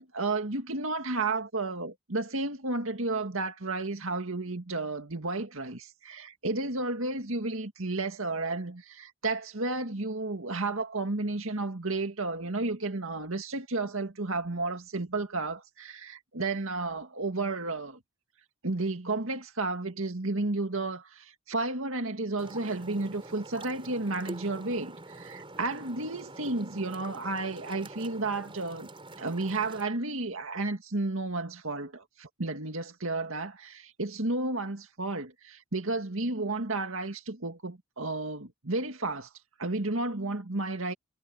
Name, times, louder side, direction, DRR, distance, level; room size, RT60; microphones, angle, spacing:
voice 1, 0.0-18.0 18.6-28.9 29.2-39.3 39.6-40.9, right 2 dB, 65° right, 2.1 m, -32 dB
sound 1, 22.4-29.8, right 2 dB, 25° right, 5.3 m, -45 dB
head